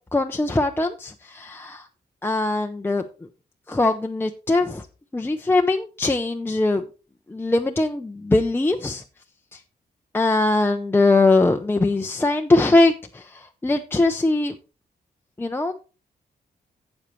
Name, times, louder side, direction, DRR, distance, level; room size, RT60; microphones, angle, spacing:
voice 1, 0.1-1.9 2.2-3.0 3.7-4.9 5.1-6.8 7.3-9.0 9.5-9.6 10.1-14.6 15.4-15.7, left 2 dB, 15° left, 0.6 m, -21 dB
12.0 x 8.1 x 3.1 m
wide cardioid pair, 130°, 17 cm